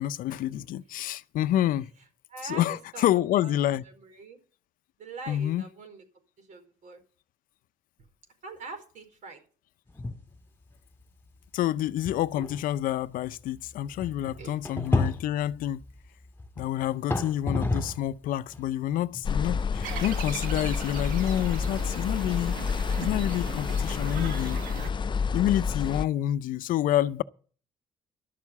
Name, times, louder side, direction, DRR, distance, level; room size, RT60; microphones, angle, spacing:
voice 1, 0.0-1.9 2.4-3.8 5.3-5.7 11.5-15.8 16.6-22.6 23.0-24.6 25.3-27.2, left 12 dB, 80° left, 0.6 m, -28 dB
voice 2, 2.3-4.4 5.0-6.0 6.4-7.0 8.4-9.4 14.4-14.6, right 4 dB, 65° right, 4.8 m, -43 dB
sound 1, 9.9-10.4 10.7-10.8 11.5-11.6 12.0-18.1 18.5-22.8, left 2 dB, 15° left, 1.9 m, -33 dB
sound 2, 19.2-26.0, left 5 dB, 35° left, 0.5 m, -29 dB
sound 3, 19.8-24.9, right 8 dB, 90° right, 1.6 m, -40 dB
12.0 x 7.3 x 8.2 m
cardioid pair, 80°, 14 cm